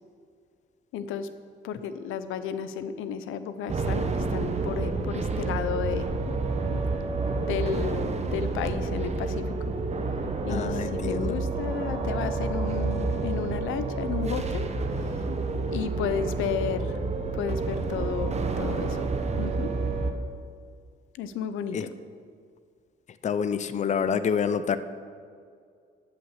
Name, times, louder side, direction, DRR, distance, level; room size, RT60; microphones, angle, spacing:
voice 1, 0.9-1.3 1.6-6.1 6.7-6.8 7.4-9.5 10.5-14.6 15.5-16.9 17.3-19.1 19.4-19.7 21.1-21.9, left 8 dB, 90° left, 12 dB, 0.6 m, -33 dB
sound 1, 3.7-20.1, right 3 dB, 35° right, 0.9 m, -29 dB
voice 2, 10.5-11.4 21.7-21.9 23.2-24.8, left 7 dB, 35° left, 12 dB, 0.5 m, -27 dB
9.8 x 5.7 x 7.3 m, 2.2 s
cardioid pair, 90°, 20 cm